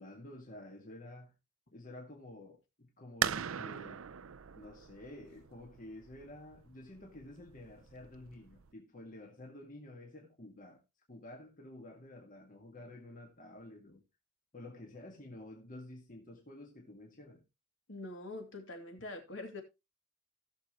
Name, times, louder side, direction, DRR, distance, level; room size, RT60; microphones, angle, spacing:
voice 1, 0.0-1.3 1.7-4.1 4.5-10.8 11.1-14.0 14.5-17.4, left 1 dB, 40° left, 1.9 m, -51 dB
sound 1, 3.2-8.7, right 9 dB, 85° right, 0.5 m, -40 dB
voice 2, 17.9-19.6, left 2 dB, 65° left, 2.7 m, -44 dB
17.0 x 6.8 x 3.0 m
head